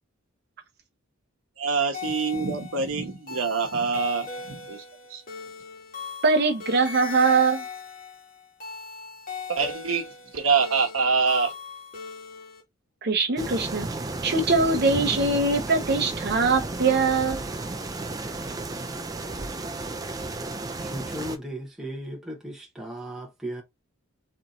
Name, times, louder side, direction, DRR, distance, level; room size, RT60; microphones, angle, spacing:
voice 1, 1.6-4.8 5.1-5.2 9.5-11.5 15.3-15.4, right 5 dB, 80° right, 1.1 m, -25 dB
sound 1, 1.9-12.6, left 5 dB, 40° left, 1.5 m, -39 dB
voice 2, 6.2-7.6 13.0-13.9 14.2-17.4, right 3 dB, 50° right, 0.8 m, -22 dB
sound 2, 13.4-21.4, right 2 dB, 15° right, 0.4 m, -33 dB
voice 3, 20.8-23.6, equal, ahead, 1.1 m, -36 dB
4.4 x 3.0 x 3.9 m
head